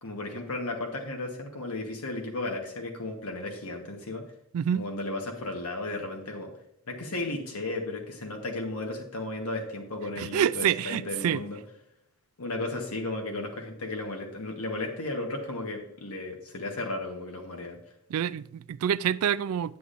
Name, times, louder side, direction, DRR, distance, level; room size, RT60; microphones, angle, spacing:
voice 1, 0.0-4.2 4.7-6.5 6.9-11.6 12.4-17.8, left 2 dB, 80° left, 1.2 m, -34 dB
voice 2, 10.2-11.4 18.1-19.8, right 9 dB, 70° right, 0.3 m, -27 dB
9.3 x 8.2 x 2.5 m
head